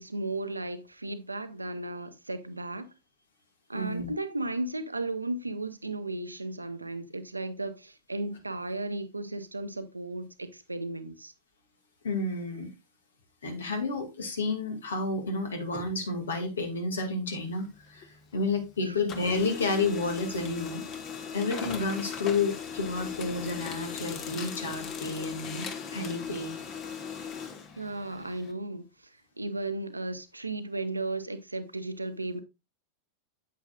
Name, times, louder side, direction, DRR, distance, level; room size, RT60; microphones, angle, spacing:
voice 1, 0.0-2.9 3.7-11.3 18.8-19.0 27.8-32.4, right 2 dB, 80° right, 0.8 m, -35 dB
voice 2, 3.7-4.1 12.0-12.7 13.4-18.0 18.3-20.8 21.3-26.5, left 3 dB, 65° left, 2.2 m, -31 dB
Printer, 17.4-18.7 19.0-28.5, left 6 dB, 35° left, 1.4 m, -38 dB
8.5 x 8.5 x 2.4 m
figure-of-eight pair, 90°, 0 cm